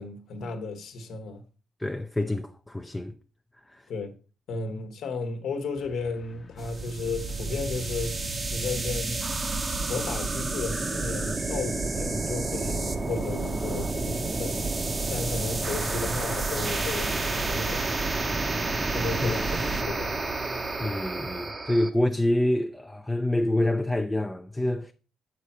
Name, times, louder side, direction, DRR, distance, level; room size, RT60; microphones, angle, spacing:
voice 1, 0.0-1.4 3.9-4.1 4.5-9.2 9.8-14.7 15.1-17.8 18.9-20.2, left 4 dB, 70° left, 1.1 m, -34 dB
voice 2, 1.8-3.1 3.7-3.8 4.7-4.8 19.2-19.5 20.8-24.9, left 1 dB, 10° left, 0.4 m, -27 dB
sound 1, 5.8-20.0, left 4 dB, 40° left, 1.0 m, -48 dB
sound 2, 6.6-21.9, right 3 dB, 25° right, 0.7 m, -30 dB
7.3 x 5.0 x 4.3 m
cardioid pair, 90°, 0 cm